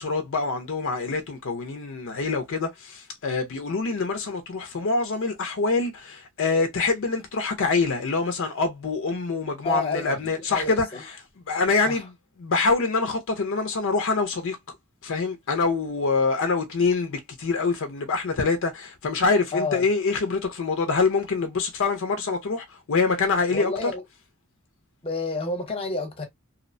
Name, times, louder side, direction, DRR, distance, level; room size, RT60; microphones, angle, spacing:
voice 1, 0.0-10.9 11.5-12.1 12.4-14.6 15.0-23.9, left 4 dB, 65° left, 0.5 m, -25 dB
voice 2, 9.6-11.0 11.9-12.0 19.5-19.9 23.5-24.0 25.0-26.3, left 2 dB, 25° left, 0.8 m, -30 dB
2.7 x 2.1 x 2.5 m
head